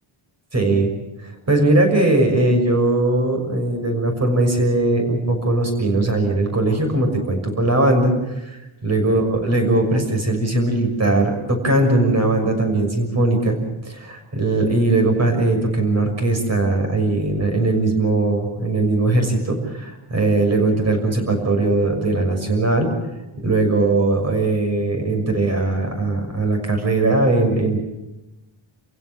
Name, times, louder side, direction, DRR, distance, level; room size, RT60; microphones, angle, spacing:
voice 1, 0.5-0.9 1.5-8.1 8.5-13.6 13.8-22.9 23.4-27.8, right 2 dB, 35° right, 4 dB, 6.4 m, -19 dB
29.0 x 16.5 x 7.6 m, 0.99 s
wide cardioid pair, 160°, 48 cm